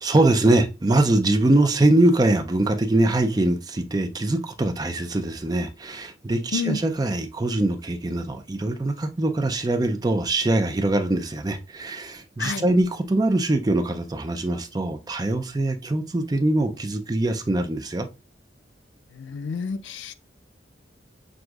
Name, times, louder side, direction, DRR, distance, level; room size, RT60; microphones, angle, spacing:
voice 1, 0.0-18.1, right 2 dB, 20° right, 0.4 m, -22 dB
voice 2, 19.1-20.2, left 5 dB, 85° left, 0.4 m, -29 dB
6.1 x 2.6 x 2.3 m
head